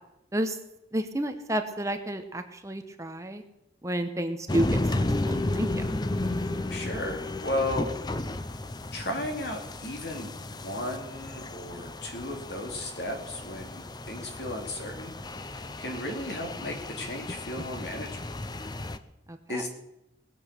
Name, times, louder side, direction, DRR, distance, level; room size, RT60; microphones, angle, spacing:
voice 1, 0.9-3.4 3.8-4.7 5.0-5.8 19.3-19.6, right 1 dB, 15° right, 7 dB, 0.9 m, -31 dB
sound 1, 4.5-19.0, left 2 dB, 25° left, 0.6 m, -33 dB
voice 2, 6.7-7.9 8.9-15.1 15.5-18.4 19.5-19.7, left 1 dB, 60° left, 3 dB, 2.7 m, -35 dB
19.5 x 8.0 x 6.7 m, 0.88 s
head